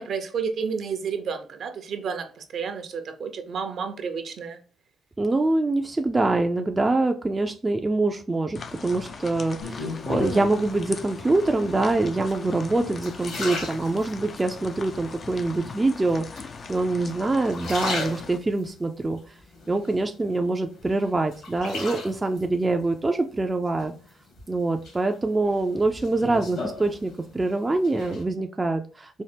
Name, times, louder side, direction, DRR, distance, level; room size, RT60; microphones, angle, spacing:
voice 1, 0.0-4.6, right 6 dB, 60° right, 0.7 m, -31 dB
voice 2, 5.2-19.2 19.7-23.9 24.5-29.2, right 2 dB, 20° right, 0.4 m, -25 dB
sound 1, 8.6-18.4, left 5 dB, 45° left, 0.4 m, -40 dB
sound 2, 9.6-10.7 11.4-11.9 12.5-14.4 14.9-15.6 16.4-17.0 17.4-18.7 19.2-20.4 20.8-22.4 23.8-24.4 24.8-27.5 27.7-28.2, left 3 dB, 75° left, 1.9 m, -35 dB
4.2 x 2.1 x 3.3 m
cardioid pair, 90°, 0 cm